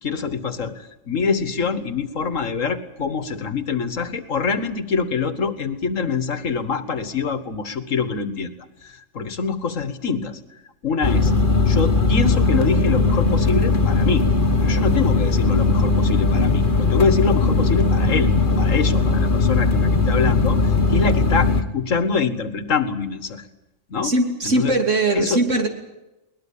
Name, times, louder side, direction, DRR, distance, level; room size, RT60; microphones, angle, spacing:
voice 1, 0.0-8.5 8.8-10.4 10.8-11.3 11.7-14.3 14.6-23.5 23.9-24.1 24.4-24.8 25.1-25.4, left 5 dB, 90° left, 12 dB, 2.1 m, -25 dB
sound 1, 11.0-21.6, left 3 dB, 40° left, 1.8 m, -18 dB
voice 2, 24.0-25.7, right 2 dB, 75° right, 4 dB, 3.4 m, -20 dB
21.5 x 20.0 x 8.6 m, 0.96 s
omnidirectional pair, 1.3 m